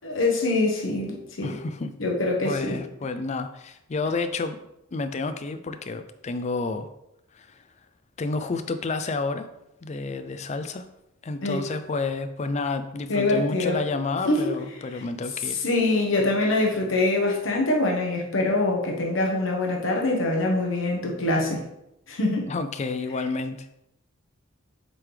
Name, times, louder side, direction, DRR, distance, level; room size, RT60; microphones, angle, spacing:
voice 1, 0.0-1.5 2.0-2.8 11.4-11.6 13.1-13.8 14.3-14.6 15.6-21.6 22.1-22.5, left 2 dB, 65° left, 0 dB, 1.1 m, -24 dB
voice 2, 1.4-1.9 2.4-4.6 4.9-6.9 7.3-7.6 8.2-9.4 9.8-10.9 11.2-15.6 22.5-23.8, left 3 dB, 35° left, 9 dB, 0.4 m, -30 dB
7.5 x 3.9 x 3.2 m, 0.84 s
head